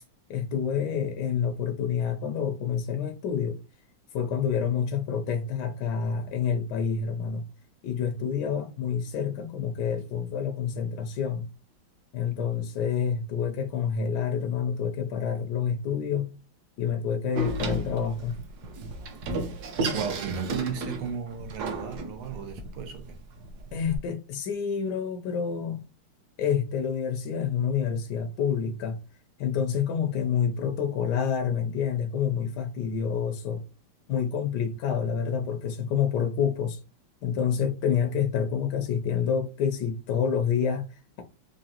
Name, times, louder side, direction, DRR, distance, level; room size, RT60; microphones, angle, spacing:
voice 1, 0.3-3.6 4.1-7.5 7.8-11.5 12.1-16.3 16.8-18.4 23.7-25.8 26.4-29.0 29.4-33.6 34.1-36.8 37.2-41.2, left 7 dB, 75° left, 0.9 m, -28 dB
Door, 17.3-24.0, right 2 dB, 65° right, 1.0 m, -34 dB
voice 2, 19.9-23.2, right 6 dB, 85° right, 1.8 m, -34 dB
4.8 x 2.6 x 2.8 m
omnidirectional pair, 2.4 m